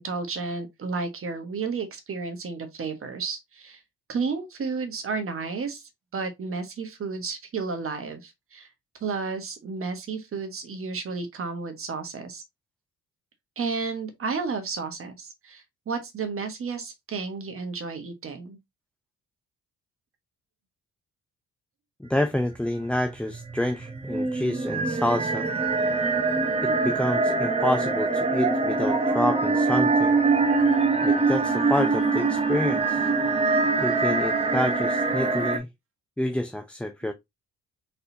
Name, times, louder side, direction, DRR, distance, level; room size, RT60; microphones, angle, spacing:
voice 1, 0.0-3.8 4.1-5.8 6.1-8.7 9.0-12.4 13.6-18.6 25.9-26.7, right 4 dB, 45° right, 1.4 m, -32 dB
voice 2, 22.0-25.5 26.6-30.2 31.0-33.1 33.8-35.7 36.2-37.1, left 1 dB, 5° left, 0.5 m, -28 dB
sound 1, 23.1-35.6, right 3 dB, 20° right, 0.9 m, -24 dB
4.1 x 4.0 x 2.7 m
cardioid pair, 90°, 30 cm